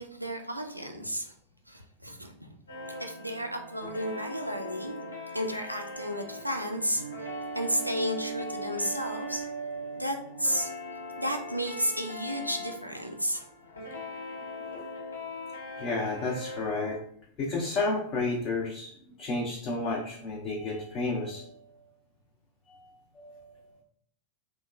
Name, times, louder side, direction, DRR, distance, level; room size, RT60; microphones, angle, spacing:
voice 1, 0.0-1.3 1.7-2.5 3.0-5.0 5.3-7.0 7.5-9.5 10.0-10.7 11.2-13.5, equal, 90° right, 3 dB, 0.3 m, -32 dB
sound 1, 2.7-17.0, equal, 80° left, 0.6 m, -39 dB
voice 2, 15.8-17.0 17.4-18.9 19.2-21.7 22.7-22.8 23.2-23.7, left 3 dB, 35° left, -2 dB, 0.5 m, -31 dB
2.9 x 2.1 x 2.3 m, 0.67 s
figure-of-eight pair, 90°, 0 cm